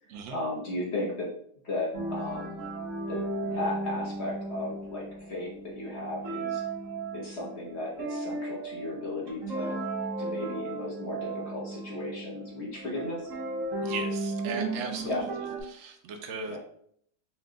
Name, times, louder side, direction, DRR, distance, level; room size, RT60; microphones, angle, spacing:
voice 1, 0.3-1.3 1.6-2.5 3.1-6.6 7.1-9.8 10.2-13.3 15.0-15.2 16.5-16.6, left 2 dB, 50° left, -3 dB, 0.9 m, -35 dB
sound 1, 1.9-15.6, right 2 dB, 50° right, 1.2 m, -35 dB
voice 2, 13.8-15.3 15.7-16.6, right 5 dB, 80° right, 4 dB, 0.7 m, -37 dB
4.3 x 2.2 x 3.7 m, 0.66 s
omnidirectional pair, 1.9 m